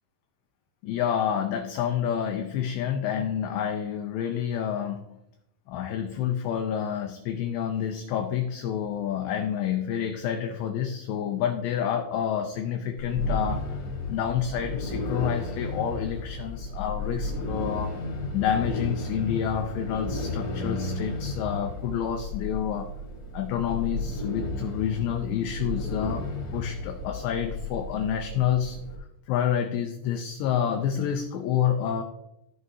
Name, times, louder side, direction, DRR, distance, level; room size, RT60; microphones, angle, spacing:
voice 1, 0.8-5.2 5.7-13.8 14.1-18.0 18.3-22.9 23.3-32.0, left 9 dB, 90° left, 5 dB, 2.5 m, -28 dB
sound 1, 13.0-29.0, left 2 dB, 65° left, 4.0 m, -33 dB
16.0 x 6.2 x 2.8 m, 0.85 s
omnidirectional pair, 5.9 m